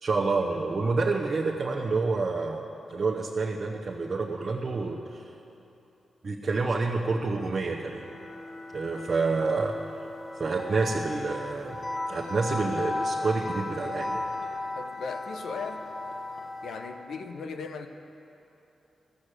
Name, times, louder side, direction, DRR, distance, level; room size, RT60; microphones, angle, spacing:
voice 1, 0.0-5.2 6.2-8.0 8.7-9.7 10.4-11.8 12.1-14.2, right 3 dB, 40° right, -2 dB, 0.9 m, -28 dB
sound 1, 7.5-17.0, left 2 dB, 50° left, 1.4 m, -36 dB
voice 2, 14.7-15.9 16.6-17.9, left 5 dB, 85° left, 7 dB, 0.8 m, -37 dB
14.0 x 7.6 x 8.2 m, 2.9 s
wide cardioid pair, 115°, 0 cm